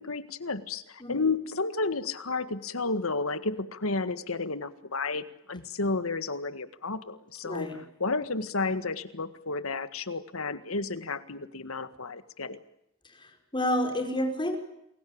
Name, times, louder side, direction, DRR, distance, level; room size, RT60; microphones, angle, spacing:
voice 1, 0.0-7.7 8.0-12.6, left 3 dB, 80° left, 12 dB, 1.8 m, -32 dB
voice 2, 7.4-7.8 13.0-14.6, left 1 dB, 25° left, 5 dB, 5.2 m, -30 dB
29.5 x 21.5 x 8.7 m, 0.81 s
head